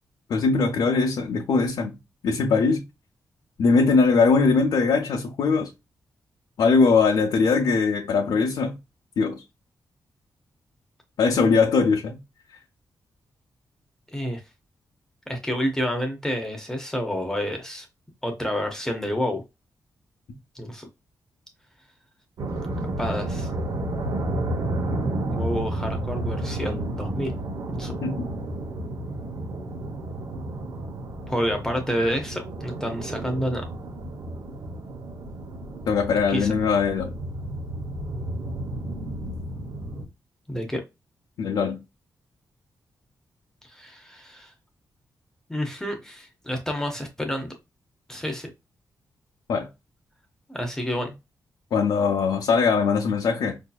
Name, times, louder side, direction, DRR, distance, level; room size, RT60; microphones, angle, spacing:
voice 1, 0.3-2.0 2.2-2.8 3.6-5.7 6.6-8.8 9.2-9.4 11.2-12.2 28.0-28.3 35.9-37.2 41.4-41.8 49.5-49.7 51.7-53.6, left 4 dB, 80° left, 0.7 m, -21 dB
voice 2, 15.3-17.9 18.2-19.4 20.5-20.9 22.8-23.5 25.3-27.3 27.7-27.9 31.3-33.6 36.3-36.5 40.5-40.8 43.6-44.5 45.5-47.5 48.1-48.5 50.5-51.1, equal, 10° left, 0.6 m, -29 dB
sound 1, 22.4-40.1, right 1 dB, 65° right, 0.9 m, -31 dB
4.9 x 2.7 x 2.2 m
wide cardioid pair, 165°, 7 cm